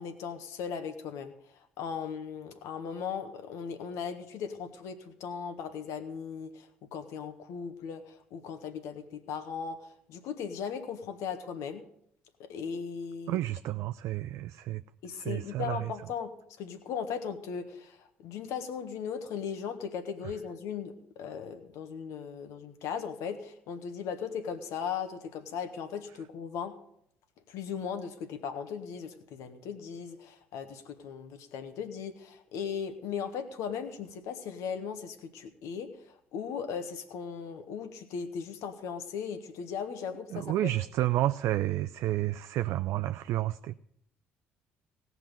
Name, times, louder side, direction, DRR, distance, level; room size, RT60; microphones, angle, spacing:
voice 1, 0.0-11.8 12.4-13.4 15.0-16.3 16.6-26.7 27.5-40.7, left 7 dB, 65° left, 9 dB, 1.5 m, -38 dB
voice 2, 13.3-14.8 15.1-15.9 20.2-20.3 40.3-43.7, right 14 dB, 65° right, 10 dB, 0.4 m, -30 dB
17.0 x 6.0 x 9.0 m, 0.71 s
hypercardioid pair, 55°, 5 cm